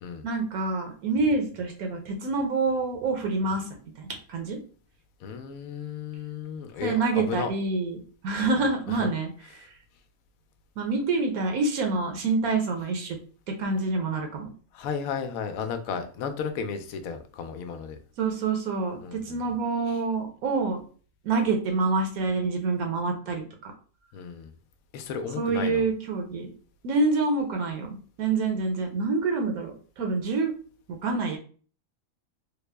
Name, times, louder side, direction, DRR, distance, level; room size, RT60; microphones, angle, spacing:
voice 1, 0.2-3.7 4.0-4.6 6.8-8.0 8.2-9.3 9.5-9.7 10.8-13.2 13.5-14.5 18.2-20.8 21.2-23.7 25.4-26.5 26.8-30.5 31.0-31.4, right 3 dB, 80° right, 3 dB, 1.2 m, -27 dB
voice 2, 5.2-7.5 8.5-8.6 8.9-9.1 9.6-9.7 14.7-18.0 19.0-19.4 19.9-20.0 24.1-24.5 24.9-25.9, left 6 dB, 75° left, 8 dB, 1.0 m, -34 dB
3.5 x 2.0 x 3.3 m, 0.40 s
omnidirectional pair, 1.5 m